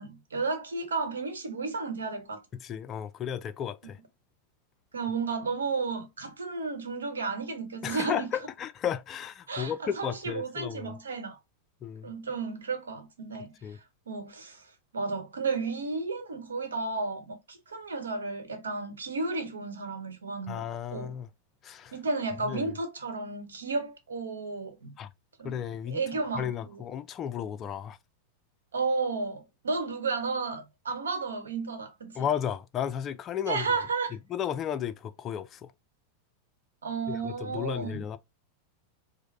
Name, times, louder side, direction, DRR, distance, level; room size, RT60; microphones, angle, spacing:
voice 1, 0.0-2.4 4.9-8.3 9.5-11.4 12.0-21.1 21.9-24.9 25.4-26.8 28.7-32.2 33.4-34.2 36.8-38.0, right 4 dB, 70° right, 1.0 m, -33 dB
voice 2, 2.6-4.0 7.8-11.0 11.8-12.1 13.6-13.8 20.5-21.3 21.6-21.9 22.4-22.7 25.0-25.1 25.4-26.0 26.3-28.0 32.2-33.7 34.3-35.7 37.1-38.2, left 9 dB, 30° left, 0.3 m, -34 dB
4.7 x 2.0 x 3.2 m
figure-of-eight pair, 90°, 0 cm